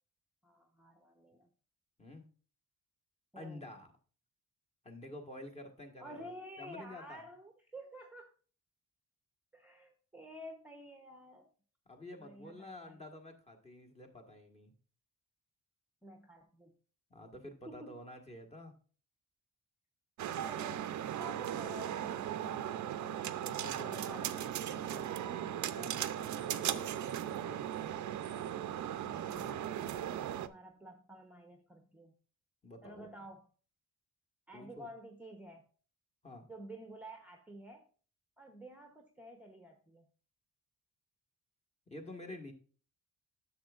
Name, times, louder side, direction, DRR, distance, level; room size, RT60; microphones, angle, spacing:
voice 1, 0.4-1.5 3.3-3.6 6.0-8.3 9.5-11.5 12.2-13.0 16.0-16.7 17.7-18.0 20.4-23.3 23.9-24.6 29.0-32.1 32.8-33.5 34.5-35.6 36.5-37.9 38.4-40.1, right 1 dB, 5° right, 3 dB, 0.9 m, -51 dB
voice 2, 3.3-3.9 4.8-6.3 6.6-7.2 11.9-14.7 17.1-18.7 23.4-27.9 32.6-33.1 34.5-34.9 36.2-36.5 41.9-42.5, left 1 dB, 20° left, 3 dB, 1.5 m, -50 dB
sound 1, 20.2-30.5, right 10 dB, 60° right, 0.6 m, -37 dB
sound 2, 22.1-22.3 22.6-22.9 23.5-24.2 24.4-24.5 24.9-25.0 25.4-25.6 26.0-27.9 28.2-28.6, left 4 dB, 50° left, 1.6 m, -63 dB
10.5 x 7.1 x 2.4 m, 0.40 s
cardioid pair, 140°, 33 cm